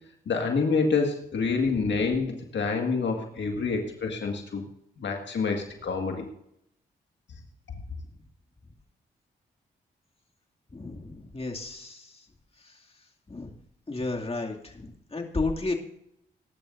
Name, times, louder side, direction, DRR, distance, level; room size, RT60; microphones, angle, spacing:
voice 1, 0.3-4.6 5.0-6.3, left 4 dB, 65° left, 3 dB, 1.9 m, -27 dB
voice 2, 10.7-12.2 12.6-12.7 13.3-13.5 13.9-15.7, left 3 dB, 30° left, 1 dB, 2.4 m, -33 dB
20.0 x 11.5 x 2.6 m, 0.78 s
supercardioid pair, 45°, 20 cm